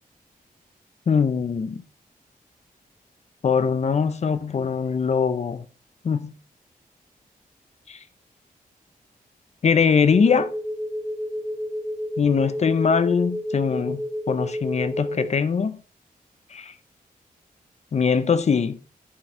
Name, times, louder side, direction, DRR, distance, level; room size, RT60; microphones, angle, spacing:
voice 1, 1.1-1.8 3.4-5.6 6.0-6.3 7.9-8.0 9.6-10.5 12.2-14.0 14.3-15.8 16.5-16.7 17.9-18.8, left 6 dB, 45° left, 0.6 m, -22 dB
sound 1, 10.0-15.3, equal, 10° right, 0.6 m, -30 dB
11.5 x 4.6 x 4.4 m
wide cardioid pair, 150°, 15 cm